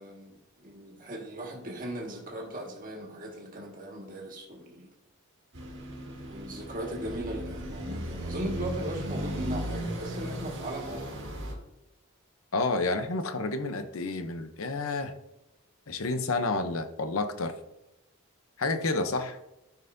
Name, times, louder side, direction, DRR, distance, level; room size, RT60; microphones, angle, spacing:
voice 1, 0.0-4.9 6.2-11.2, right 1 dB, 40° right, 0 dB, 1.7 m, -38 dB
sound 1, 5.5-11.5, equal, 55° right, 1.8 m, -36 dB
voice 2, 12.5-15.1 15.9-17.5 18.6-19.4, left 3 dB, 70° left, 8 dB, 0.8 m, -30 dB
13.0 x 5.7 x 2.7 m, 0.90 s
head